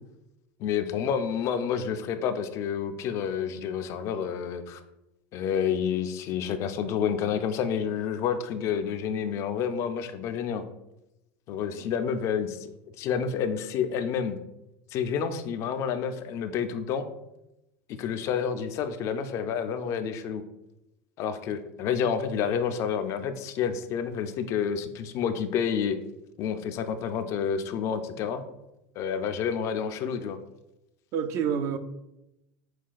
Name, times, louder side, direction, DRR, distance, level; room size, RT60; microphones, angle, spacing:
voice 1, 0.6-4.8 5.3-10.7 11.5-12.7 13.0-14.4 14.9-17.1 18.0-20.4 21.2-26.0 26.4-28.4 29.0-30.4, left 7 dB, 50° left, 9 dB, 0.3 m, -29 dB
voice 2, 31.1-31.8, right 7 dB, 50° right, 9 dB, 0.4 m, -28 dB
5.7 x 2.3 x 2.4 m, 0.91 s
supercardioid pair, 105°, 6 cm